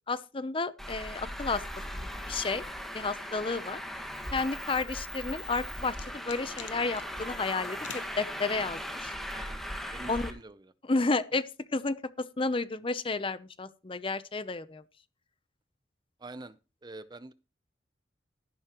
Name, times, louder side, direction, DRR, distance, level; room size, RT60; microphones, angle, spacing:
voice 1, 0.1-1.6 2.3-2.6 2.9-3.8 4.3-9.1 10.1-10.3 10.9-14.8, left 3 dB, 30° left, 0.7 m, -32 dB
Traffic noise roadway noise, 0.8-10.3, equal, ahead, 1.6 m, -38 dB
sound 1, 5.1-7.1 7.8-8.1, left 9 dB, 75° left, 1.0 m, -46 dB
voice 2, 9.3-9.6 9.9-10.7 16.2-17.3, right 2 dB, 20° right, 0.6 m, -46 dB
13.5 x 11.5 x 3.0 m
head